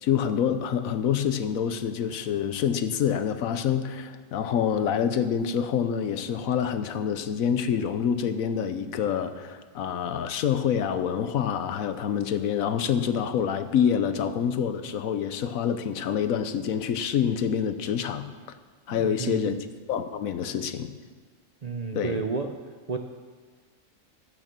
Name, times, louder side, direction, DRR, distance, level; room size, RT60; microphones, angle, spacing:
voice 1, 0.0-18.3 18.9-19.6 19.9-20.9 21.9-22.2, left 8 dB, 85° left, 11 dB, 1.2 m, -27 dB
voice 2, 18.9-19.6 21.6-22.6 22.9-23.0, right 4 dB, 45° right, 5 dB, 0.5 m, -31 dB
14.5 x 6.5 x 6.7 m, 1.5 s
omnidirectional pair, 1.4 m